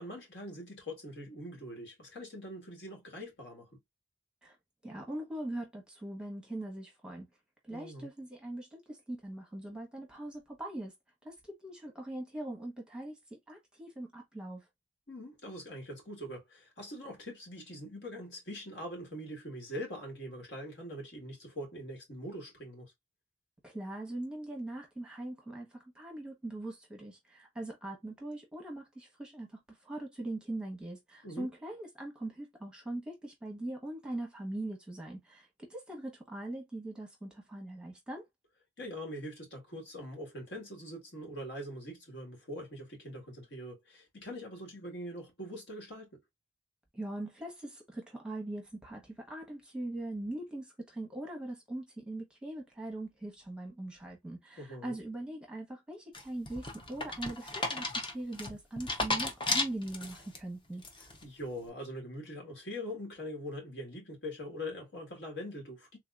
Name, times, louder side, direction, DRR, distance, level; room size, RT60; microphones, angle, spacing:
voice 1, 0.0-3.7 7.7-8.1 15.1-22.9 31.2-31.5 38.8-46.1 54.6-55.0 61.2-66.0, equal, 65° left, 1.6 m, -43 dB
voice 2, 4.8-7.3 7.6-10.9 11.2-14.6 23.6-38.2 46.9-60.8, right 1 dB, 5° right, 1.0 m, -41 dB
sound 1, 56.1-60.4 60.8-61.2, left 2 dB, 25° left, 0.6 m, -34 dB
3.5 x 2.9 x 2.3 m
head